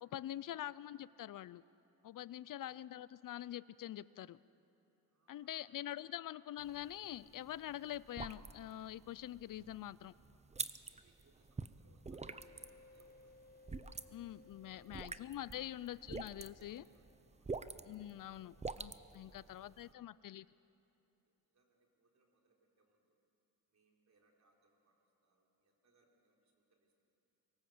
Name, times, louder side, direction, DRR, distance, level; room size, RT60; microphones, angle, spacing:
voice 1, 0.0-1.6 2.0-4.4 5.3-10.1 14.1-16.8 17.8-20.5, left 12 dB, 60° left, 18 dB, 0.5 m, -45 dB
voice 2, 2.4-2.8 5.1-6.2 10.9-13.5 14.8-15.1 15.5-15.8 16.4-17.8 19.1-20.1 21.2-23.2 23.7-24.9 25.2-26.9, right 3 dB, 45° right, 0 dB, 4.1 m, -75 dB
sound 1, 6.6-19.9, right 4 dB, 20° right, 0.6 m, -48 dB
sound 2, 12.2-17.5, left 3 dB, 25° left, 1.1 m, -64 dB
23.5 x 18.5 x 7.9 m, 2.9 s
cardioid pair, 110°, 37 cm